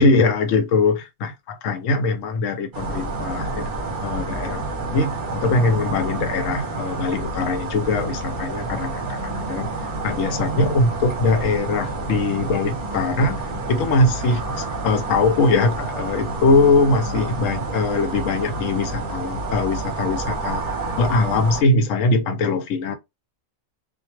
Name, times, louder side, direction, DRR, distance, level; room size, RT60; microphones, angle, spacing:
voice 1, 0.0-9.7 10.0-20.6 21.0-23.0, left 3 dB, 80° left, 1.0 m, -21 dB
sound 1, 2.7-21.6, right 3 dB, 45° right, 0.8 m, -29 dB
2.2 x 2.2 x 2.9 m
omnidirectional pair, 1.3 m